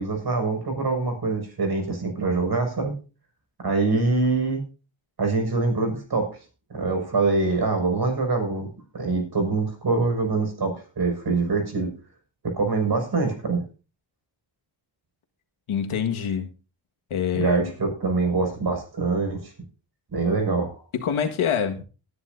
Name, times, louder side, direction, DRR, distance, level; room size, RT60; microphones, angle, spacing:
voice 1, 0.0-3.0 3.6-4.6 5.2-6.3 6.7-11.9 12.4-13.6 17.3-19.5 20.1-20.8, right 3 dB, 50° right, 4 dB, 6.0 m, -24 dB
voice 2, 15.7-16.5 17.1-17.7 20.9-21.8, left 8 dB, 80° left, 5 dB, 1.8 m, -25 dB
19.5 x 10.5 x 2.7 m, 0.33 s
cardioid pair, 85°, 49 cm